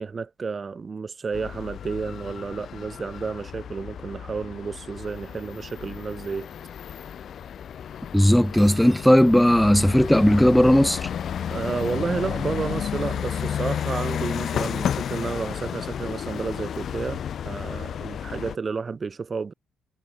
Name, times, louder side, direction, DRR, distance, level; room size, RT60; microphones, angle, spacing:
voice 1, 0.0-6.5 11.5-19.5, right 5 dB, 35° right, 1.0 m, -31 dB
sound 1, 1.3-18.6, left 8 dB, 60° left, 1.2 m, -32 dB
voice 2, 8.1-11.1, equal, 5° left, 0.3 m, -17 dB
Cutlery silverware, 8.4-9.2, right 2 dB, 20° right, 3.2 m, -48 dB
cardioid pair, 90°, 0 cm